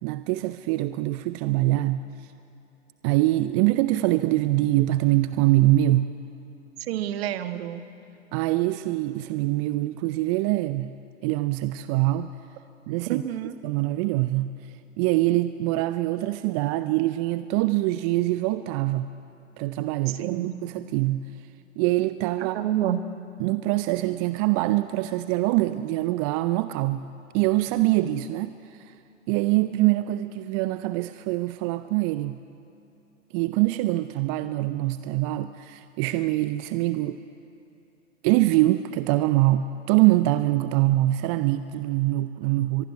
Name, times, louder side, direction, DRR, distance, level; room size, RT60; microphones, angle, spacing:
voice 1, 0.0-2.0 3.0-6.1 8.3-10.9 11.2-12.3 12.9-13.2 13.6-19.1 19.6-21.3 21.8-22.6 23.4-27.1 27.3-28.9 29.3-32.4 33.3-37.2 38.2-42.8, right 16 dB, 25° right, 12 dB, 0.5 m, -24 dB
voice 2, 6.8-7.9 13.1-13.5 20.1-20.5 22.4-23.0, right 12 dB, 50° right, 9 dB, 1.5 m, -28 dB
23.5 x 22.0 x 9.6 m, 2.7 s
figure-of-eight pair, 110°, 40 cm